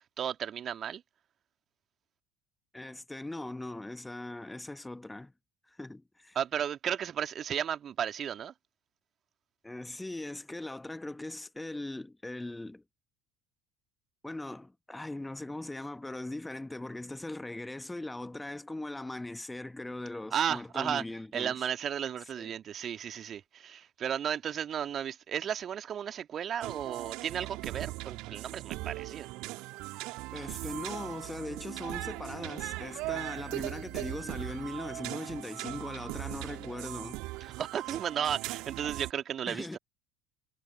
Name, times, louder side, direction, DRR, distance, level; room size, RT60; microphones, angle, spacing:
voice 1, 0.2-1.0 6.4-8.5 20.3-21.0 21.3-29.3 37.4-39.8, right 9 dB, 40° right, 1.9 m, -34 dB
voice 2, 2.7-5.3 5.7-6.4 9.6-12.8 14.2-21.5 22.4-22.5 30.3-37.2 39.5-39.8, left 2 dB, 10° left, 1.2 m, -40 dB
sound 1, 26.6-39.1, right 22 dB, 55° right, 2.3 m, -39 dB
figure-of-eight pair, 65°, 0 cm